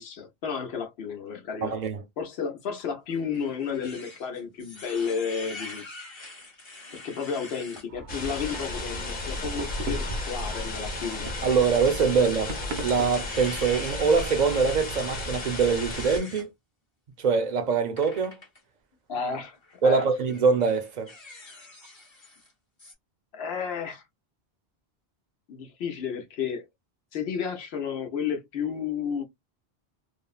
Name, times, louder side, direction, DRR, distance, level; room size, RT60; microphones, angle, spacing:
voice 1, 0.0-1.8 2.2-5.8 6.9-11.3 19.1-19.6 19.8-20.1 23.3-24.0 25.5-26.6 27.1-29.2, left 6 dB, 85° left, 1.0 m, -32 dB
voice 2, 1.6-2.0 11.4-16.5 17.2-18.4 19.8-21.1, right 5 dB, 55° right, 0.6 m, -24 dB
sound 1, 3.1-7.9 8.4-8.7 9.2-9.3 10.3-16.5 18.0-18.6 19.6-19.8 20.3-22.5 22.8-22.9, left 2 dB, 30° left, 0.8 m, -45 dB
sound 2, 7.9-13.3, right 3 dB, 85° right, 0.9 m, -40 dB
sound 3, 8.1-16.2, left 2 dB, 55° left, 1.1 m, -33 dB
3.4 x 2.0 x 2.3 m
omnidirectional pair, 1.0 m